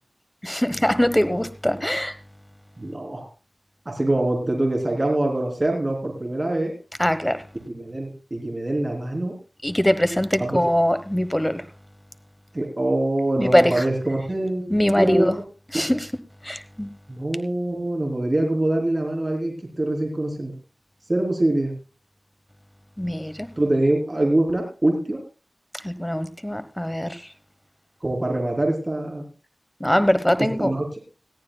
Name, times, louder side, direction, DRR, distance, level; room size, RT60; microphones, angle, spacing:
voice 1, 0.4-2.1 7.0-7.4 9.6-11.6 13.4-13.8 14.7-15.3 15.7-16.1 16.4-16.9 23.0-23.5 25.8-27.2 29.8-30.7, equal, 10° left, 11 dB, 1.2 m, -22 dB
voice 2, 2.8-3.3 3.9-6.7 7.7-9.3 10.4-10.6 12.5-15.4 17.1-20.5 21.1-21.7 23.6-25.2 28.0-29.2 30.6-30.9, right 1 dB, 30° right, 1 dB, 3.5 m, -24 dB
20.0 x 14.0 x 2.3 m, 0.35 s
wide cardioid pair, 65°, 0 cm